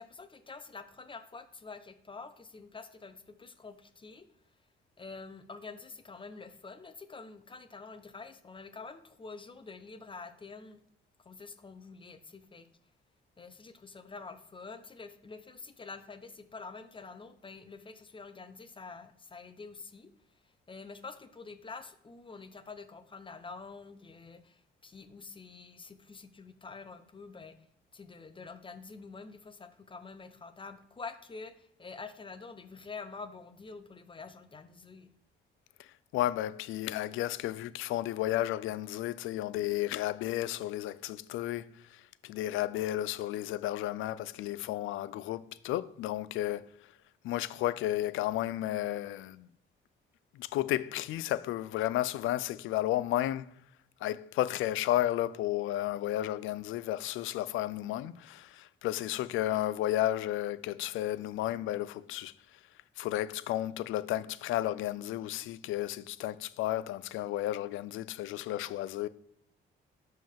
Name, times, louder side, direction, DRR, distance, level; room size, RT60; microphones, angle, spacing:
voice 1, 0.0-4.3 5.0-10.8 11.2-12.7 13.4-20.1 20.4-27.6 27.9-35.1, left 4 dB, 25° left, 0.7 m, -47 dB
voice 2, 36.1-46.7 47.2-49.5 50.3-53.5 54.0-62.3 63.0-69.1, left 14 dB, 85° left, 0.4 m, -33 dB
5.5 x 5.3 x 3.5 m
cardioid pair, 90°, 20 cm